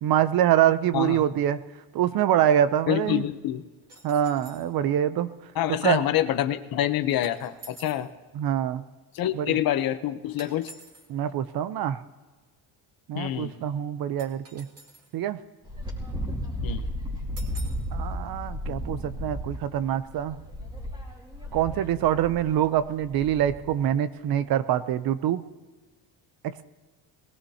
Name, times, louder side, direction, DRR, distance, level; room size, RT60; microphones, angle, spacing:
voice 1, 0.0-1.6 1.9-3.3 4.0-5.3 5.8-6.0 8.3-8.8 9.3-9.6 11.1-12.0 13.1-14.7 15.1-15.4 17.9-20.4 21.5-25.4, right 10 dB, 55° right, 13 dB, 0.7 m, -25 dB
voice 2, 0.9-1.2 2.9-3.6 5.5-8.1 9.1-10.7 13.1-13.5 16.6-16.9, left 12 dB, 55° left, 11 dB, 0.8 m, -26 dB
sound 1, 3.9-4.7 7.2-8.1 10.4-11.1 14.2-15.1 17.4-17.9, right 2 dB, 35° right, 2.5 m, -48 dB
Wind, 15.6-23.8, equal, 10° right, 2.5 m, -34 dB
20.5 x 17.0 x 2.8 m, 1.3 s
cardioid pair, 135°, 42 cm